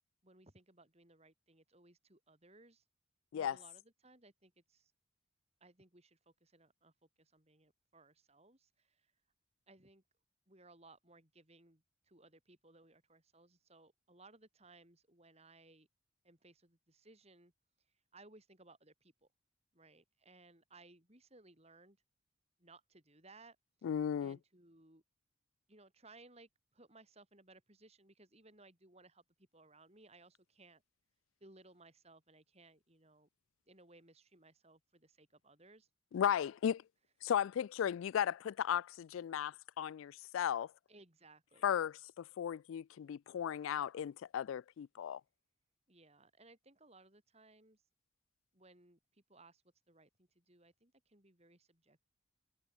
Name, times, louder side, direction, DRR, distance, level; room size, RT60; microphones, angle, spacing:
voice 1, 0.2-2.8 3.3-4.9 5.6-9.1 9.7-10.0 10.5-15.9 16.2-17.5 18.1-19.3 19.7-22.0 22.6-23.6 24.2-25.0 25.7-30.8 31.4-33.3 33.7-35.9 40.9-41.7 45.9-47.8 48.5-49.6 49.9-52.0, right 2 dB, 30° right, 4.3 m, -63 dB
voice 2, 23.8-24.4 36.1-36.8 37.2-40.7 41.6-45.2, left 9 dB, 80° left, 0.3 m, -36 dB
head